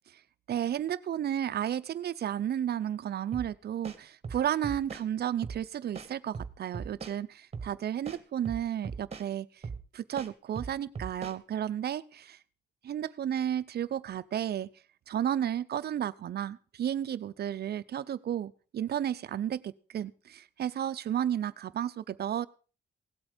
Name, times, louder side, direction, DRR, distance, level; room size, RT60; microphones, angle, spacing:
voice 1, 0.5-9.5 9.9-12.4 12.8-14.7 15.1-22.5, right 10 dB, 65° right, 15 dB, 0.6 m, -32 dB
sound 1, 3.3-3.5 3.8-5.0 5.4-5.6 5.9-7.2 7.5-7.7 8.0-9.3 9.6-9.8 10.2-11.4, right 5 dB, 35° right, 1.4 m, -39 dB
17.0 x 8.0 x 5.1 m, 0.37 s
cardioid pair, 95°, 18 cm